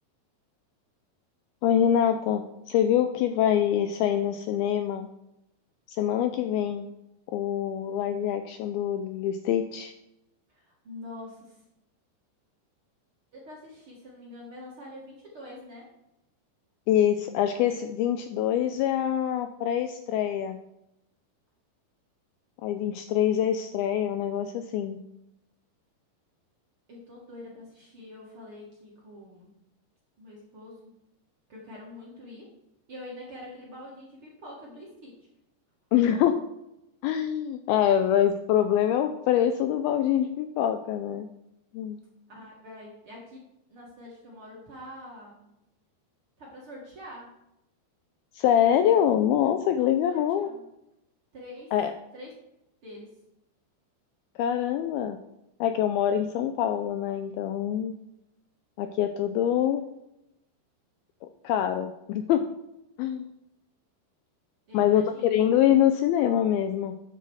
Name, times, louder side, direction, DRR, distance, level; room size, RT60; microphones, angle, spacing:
voice 1, 1.6-5.1 5.9-6.9 7.3-9.9 16.9-20.6 22.6-25.0 35.9-36.4 37.0-41.3 41.7-42.0 48.3-50.5 51.7-51.9 54.4-55.2 55.6-58.0 58.8-59.8 61.4-62.4 63.0-63.3 64.7-66.9, left 10 dB, 90° left, 7 dB, 2.1 m, -25 dB
voice 2, 10.5-11.6 13.3-15.9 26.9-29.5 30.2-30.9 31.5-32.5 32.9-35.2 42.3-43.4 43.7-45.5 46.4-47.3 49.8-50.7 51.3-51.7 52.1-52.3 52.8-53.1 64.7-65.3, left 1 dB, 40° right, -4 dB, 2.2 m, -45 dB
9.6 x 7.4 x 6.3 m, 0.87 s
omnidirectional pair, 5.0 m